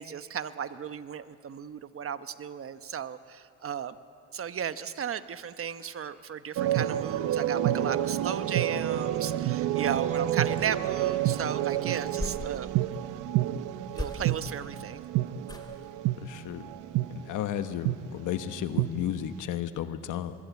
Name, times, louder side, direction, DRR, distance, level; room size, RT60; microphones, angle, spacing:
voice 1, 0.0-4.0 4.3-12.7 13.9-15.1, right 8 dB, 45° right, 11 dB, 1.1 m, -35 dB
sound 1, 6.6-17.3 17.8-18.0 18.4-18.9, right 12 dB, 90° right, 0.8 m, -29 dB
sound 2, 12.1-13.0 13.9-14.7 15.4-16.0 16.4-16.7 17.1-17.2, left 2 dB, 15° left, 3.2 m, -40 dB
voice 2, 16.2-16.6 17.1-20.3, left 10 dB, 85° left, 9 dB, 1.2 m, -33 dB
24.5 x 21.5 x 8.3 m, 2.4 s
cardioid pair, 90°, 30 cm